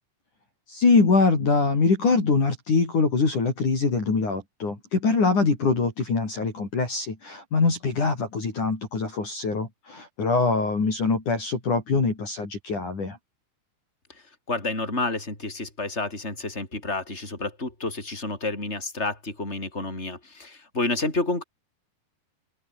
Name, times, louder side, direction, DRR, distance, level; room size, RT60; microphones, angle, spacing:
voice 1, 0.7-13.2, left 4 dB, 45° left, 6.8 m, -23 dB
voice 2, 14.5-21.4, left 2 dB, 15° left, 7.6 m, -29 dB
open air
omnidirectional pair, 5.2 m